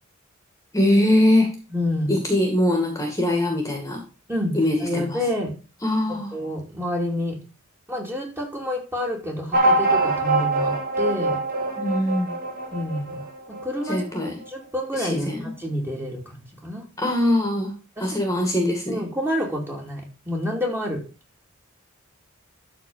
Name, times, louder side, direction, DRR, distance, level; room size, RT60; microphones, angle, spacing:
voice 1, 0.7-1.5 2.1-4.0 4.5-5.2 5.8-6.3 11.8-12.3 13.9-14.3 14.9-15.5 17.0-17.7 18.0-19.0, left 1 dB, 15° left, 3 dB, 2.2 m, -22 dB
voice 2, 1.7-2.2 4.3-4.5 4.8-5.5 6.1-7.4 7.9-11.4 12.7-13.2 13.5-14.0 14.5-16.9 18.0-18.2 18.9-21.0, left 1 dB, 10° right, -1 dB, 2.8 m, -28 dB
sound 1, 9.5-14.5, right 2 dB, 45° right, 2.1 m, -24 dB
12.5 x 4.3 x 5.6 m, 0.33 s
head